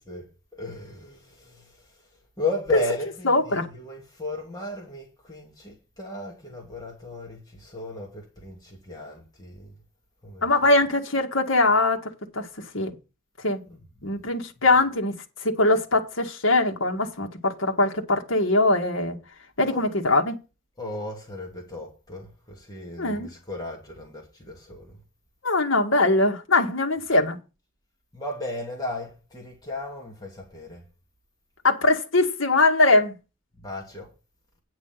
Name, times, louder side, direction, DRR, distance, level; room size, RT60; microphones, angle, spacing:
voice 1, 0.5-2.0 2.4-9.7 10.2-10.5 13.7-13.8 19.7-19.9 20.8-25.0 28.1-30.8 33.6-34.1, left 2 dB, 20° left, 2.7 m, -35 dB
voice 2, 3.2-3.7 10.4-12.9 13.4-13.6 14.0-19.2 19.6-20.4 23.0-23.3 25.4-27.4 31.6-33.2, left 2 dB, 70° left, 1.9 m, -22 dB
10.0 x 6.0 x 5.9 m
head